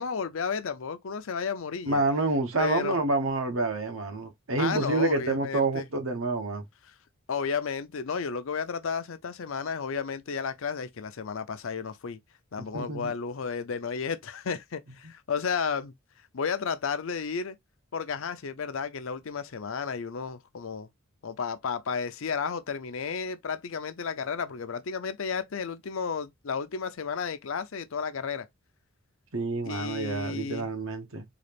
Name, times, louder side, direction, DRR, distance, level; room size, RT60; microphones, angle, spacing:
voice 1, 0.0-2.0 2.6-3.0 4.6-5.9 7.3-12.2 12.5-15.9 16.3-17.6 17.9-20.9 21.2-28.5 29.7-30.7, left 6 dB, 65° left, 0.5 m, -32 dB
voice 2, 1.8-6.6 12.7-13.1 29.3-31.2, right 3 dB, 70° right, 1.0 m, -28 dB
3.9 x 2.4 x 3.4 m
head